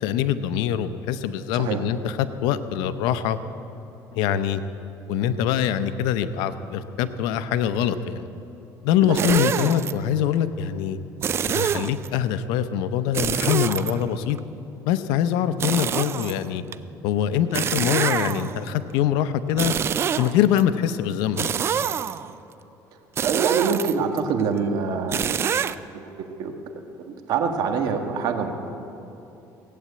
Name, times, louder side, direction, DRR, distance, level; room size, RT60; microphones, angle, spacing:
voice 1, 0.0-3.4 4.1-4.6 5.1-8.3 8.8-11.0 11.5-14.4 14.9-16.6 17.0-19.7 20.2-21.5, left 9 dB, 85° left, 12 dB, 0.7 m, -24 dB
voice 2, 9.0-9.4 23.2-25.4 25.9-26.5 27.1-28.5, right 5 dB, 65° right, 5 dB, 1.5 m, -25 dB
sound 1, 9.2-9.9 11.2-12.1 13.1-14.4 15.6-16.8 17.5-18.7 19.5-20.6 21.4-22.3 23.2-24.2 25.1-25.8, right 8 dB, 35° right, 0.4 m, -26 dB
17.0 x 8.6 x 8.4 m, 2.9 s
cardioid pair, 120°, 7 cm